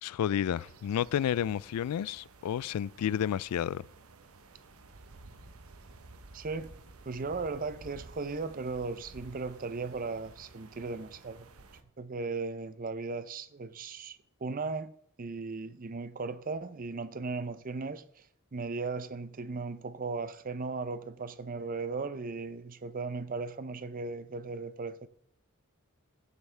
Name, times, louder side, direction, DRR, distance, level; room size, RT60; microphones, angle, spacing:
voice 1, 0.0-3.8, left 9 dB, 90° left, 0.3 m, -31 dB
sound 1, 0.5-11.8, right 3 dB, 75° right, 1.0 m, -53 dB
voice 2, 6.3-6.7 7.0-11.5 12.0-14.9 15.2-18.0 18.5-25.1, right 4 dB, 40° right, 0.6 m, -37 dB
15.0 x 8.2 x 3.3 m
head